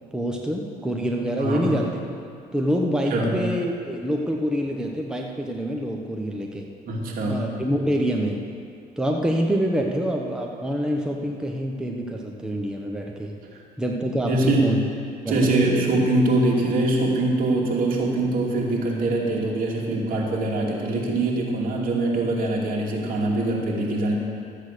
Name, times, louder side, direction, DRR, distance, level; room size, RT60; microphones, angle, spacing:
voice 1, 0.1-1.9 2.5-6.7 7.3-8.4 9.0-13.3 13.8-14.8 15.2-15.5, equal, 5° right, 0 dB, 1.1 m, -26 dB
voice 2, 6.9-7.4 14.2-14.7 15.3-24.1, right 2 dB, 60° right, -2 dB, 2.6 m, -23 dB
13.0 x 8.3 x 6.7 m, 2.3 s
cardioid pair, 110°, 16 cm